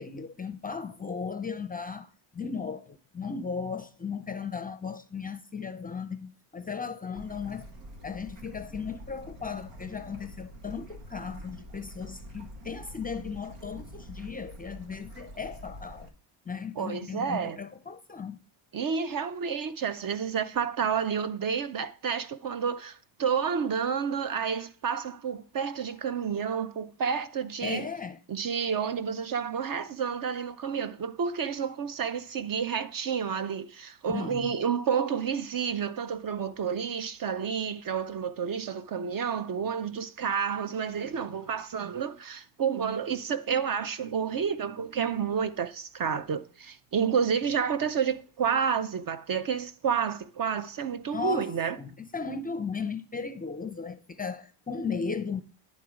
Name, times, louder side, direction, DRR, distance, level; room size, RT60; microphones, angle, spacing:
voice 1, 0.0-7.7 8.0-16.1 16.5-18.4 27.6-28.2 34.1-34.5 51.1-55.4, left 5 dB, 20° left, 0.5 m, -36 dB
Bird / Stream, 7.2-16.1, equal, 85° right, 1.8 m, -46 dB
voice 2, 16.8-17.6 18.7-27.9 28.3-51.8, right 7 dB, 45° right, 0.6 m, -30 dB
11.0 x 3.9 x 5.0 m
cardioid pair, 105°, 49 cm